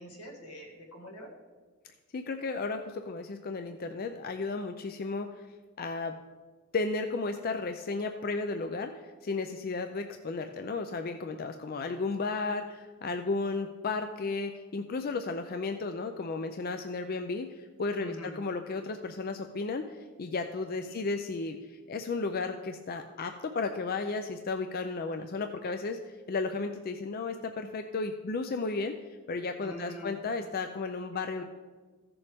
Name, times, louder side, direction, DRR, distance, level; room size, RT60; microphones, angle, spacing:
voice 1, 0.0-1.3 18.0-18.4 20.8-21.0 29.6-30.2, equal, 85° left, 0 dB, 2.0 m, -44 dB
voice 2, 2.1-5.5 5.8-6.1 6.7-21.6 21.9-29.0 29.3-31.4, left 3 dB, 40° left, 7 dB, 0.4 m, -34 dB
15.0 x 6.9 x 3.5 m, 1.4 s
head